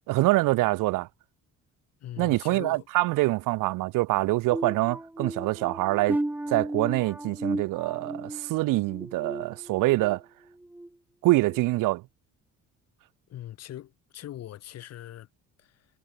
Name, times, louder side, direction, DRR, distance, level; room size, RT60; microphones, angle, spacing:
voice 1, 0.1-1.1 2.2-6.2 6.5-10.2 11.2-12.0, right 20 dB, 90° right, 1.6 m, -25 dB
voice 2, 2.0-2.9 13.3-15.3 15.6-15.9, left 12 dB, 55° left, 3.0 m, -41 dB
sound 1, 4.5-10.2 10.6-10.9 11.4-11.6, right 1 dB, 5° right, 2.8 m, -35 dB
cardioid pair, 155°, 31 cm